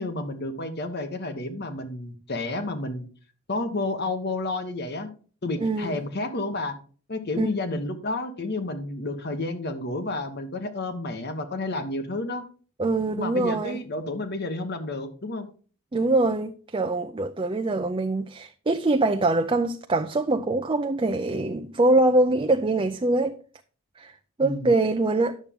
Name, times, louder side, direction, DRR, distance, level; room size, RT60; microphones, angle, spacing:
voice 1, 0.0-3.0 3.5-5.1 5.4-6.8 7.1-12.4 13.2-15.5 24.4-24.7, left 2 dB, 50° left, 1.2 m, -30 dB
voice 2, 5.6-6.0 7.3-7.5 12.8-13.8 15.9-23.4 24.0-24.1 24.4-25.4, right 2 dB, 25° right, 0.5 m, -23 dB
10.5 x 7.2 x 3.6 m
head